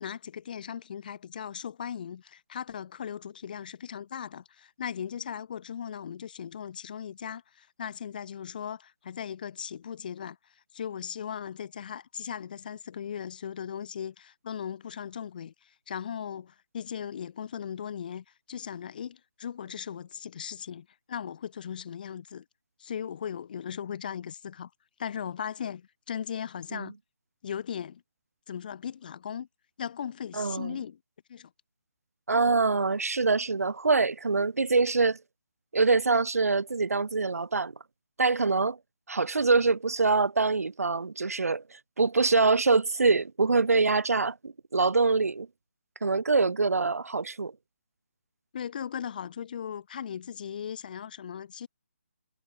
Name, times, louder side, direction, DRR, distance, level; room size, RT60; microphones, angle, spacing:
voice 1, 0.0-10.4 10.7-22.4 22.8-24.7 25.0-26.9 27.4-28.0 28.5-29.5 29.8-31.0 31.3-31.5 48.5-51.7, left 8 dB, 35° left, 2.6 m, -38 dB
voice 2, 30.3-30.8 32.3-35.2 35.7-37.7 38.2-38.8 39.1-45.5 46.0-47.5, right 4 dB, 85° right, 2.3 m, -25 dB
hypercardioid pair, 170°, 8 cm